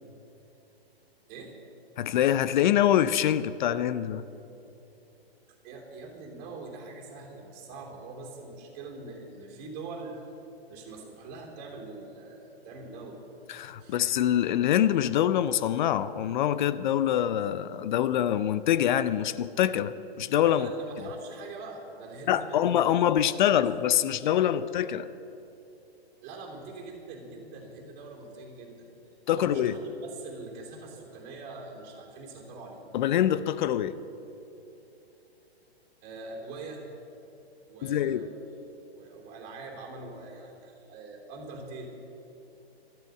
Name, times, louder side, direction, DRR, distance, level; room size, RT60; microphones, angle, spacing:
voice 1, 2.0-4.2 13.5-20.7 22.3-25.1 29.3-29.8 32.9-34.0 37.8-38.3, left 11 dB, 50° left, 15 dB, 0.6 m, -25 dB
voice 2, 5.6-10.2 10.7-13.2 13.8-14.0 20.5-23.0 23.4-23.7 26.2-28.9 29.3-32.8 36.0-36.8 37.7-41.9, right 3 dB, 30° right, 0 dB, 3.3 m, -43 dB
13.0 x 8.1 x 8.9 m, 2.9 s
hypercardioid pair, 130°, 32 cm